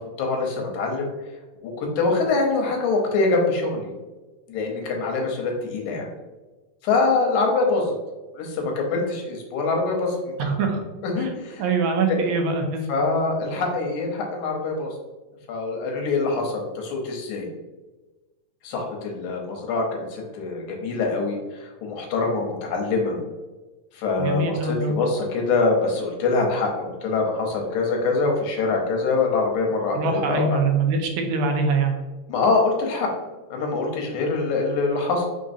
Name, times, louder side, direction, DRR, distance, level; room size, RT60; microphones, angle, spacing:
voice 1, 0.2-1.1 1.6-3.9 4.5-6.1 6.8-7.9 8.4-10.5 11.0-11.7 12.1-12.3 12.9-15.0 15.5-17.5 18.6-23.2 23.9-30.6 32.3-33.1 33.5-35.3, left 3 dB, 85° left, 1 dB, 2.3 m, -24 dB
voice 2, 10.4-10.8 11.2-11.3 11.6-12.9 24.2-25.0 29.9-32.0, right 4 dB, 80° right, 3 dB, 1.9 m, -23 dB
5.0 x 3.7 x 2.6 m, 1.2 s
omnidirectional pair, 3.4 m